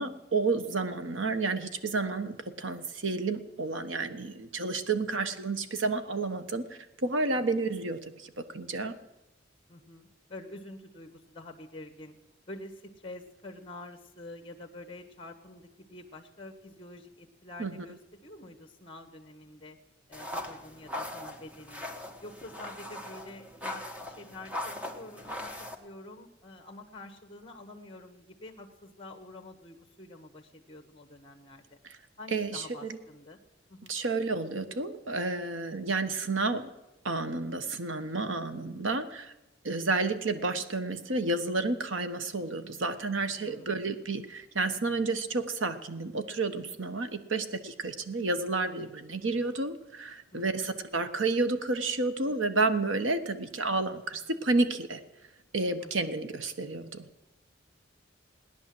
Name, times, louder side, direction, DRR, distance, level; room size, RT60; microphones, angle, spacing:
voice 1, 0.0-9.0 17.6-17.8 32.3-33.0 33.9-36.7 37.0-39.3 39.6-55.0 55.5-57.1, right 3 dB, 90° right, 10 dB, 1.2 m, -31 dB
voice 2, 9.7-12.2 12.5-19.8 20.1-21.8 22.2-31.8 32.2-33.4 33.7-33.9 43.4-43.8 50.3-50.7 55.8-56.1, left 2 dB, 30° left, 5 dB, 1.3 m, -47 dB
sound 1, 20.1-25.7, left 1 dB, 5° right, 1.5 m, -40 dB
17.5 x 10.5 x 7.7 m, 0.98 s
head